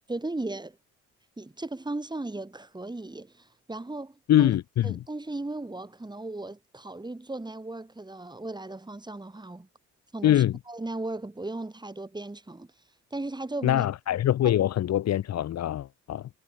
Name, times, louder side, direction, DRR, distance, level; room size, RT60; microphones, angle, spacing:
voice 1, 0.1-0.8 1.4-4.5 4.8-9.7 10.1-12.7 13.1-13.9 14.4-14.5, right 2 dB, 15° right, 5.2 m, -36 dB
voice 2, 4.3-5.0 10.2-10.6 13.6-16.3, left 12 dB, 60° left, 0.9 m, -24 dB
cardioid pair, 90°, 30 cm